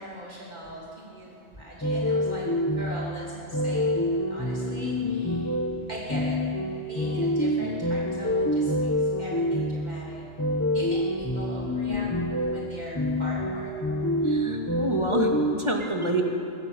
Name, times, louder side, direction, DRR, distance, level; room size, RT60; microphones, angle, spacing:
voice 1, 0.0-2.5 2.8-5.6 5.9-6.4 6.9-10.5 10.7-12.1 12.5-13.7, right 1 dB, 40° right, -6 dB, 2.9 m, -40 dB
sound 1, 1.8-15.5, left 1 dB, 15° left, 1.1 m, -27 dB
voice 2, 14.2-16.2, right 2 dB, 25° right, 1 dB, 2.2 m, -28 dB
24.0 x 15.5 x 7.1 m, 2.8 s
omnidirectional pair, 1.1 m